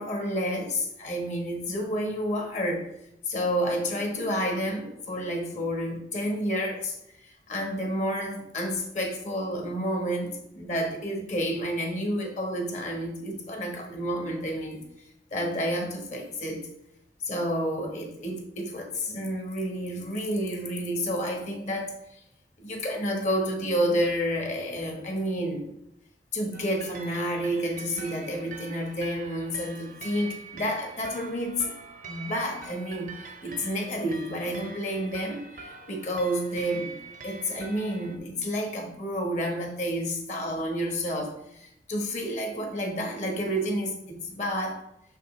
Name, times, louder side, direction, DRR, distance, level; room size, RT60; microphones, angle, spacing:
voice 1, 0.0-2.9 3.3-14.8 15.3-16.7 17.2-22.2 22.6-25.7 26.3-31.7 32.0-37.0 37.2-44.9, equal, 40° left, 2 dB, 1.3 m, -30 dB
sound 1, 26.5-38.2, right 4 dB, 45° right, 0.7 m, -44 dB
6.5 x 5.4 x 3.2 m, 0.80 s
head